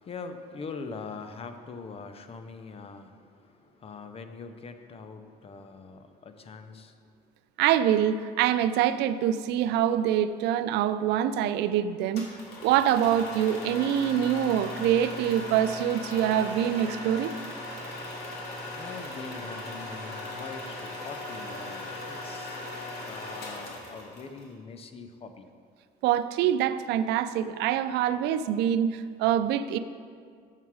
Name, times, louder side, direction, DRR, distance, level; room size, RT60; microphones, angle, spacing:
voice 1, 0.0-7.0 18.8-22.6 23.0-25.4, left 4 dB, 35° left, 8 dB, 0.7 m, -42 dB
voice 2, 7.6-12.3 12.6-17.3 26.0-29.8, right 10 dB, 85° right, 12 dB, 0.4 m, -25 dB
sound 1, 12.1-24.5, left 2 dB, 75° left, 2.0 m, -38 dB
7.5 x 6.9 x 4.7 m, 2.1 s
cardioid pair, 110°, 17 cm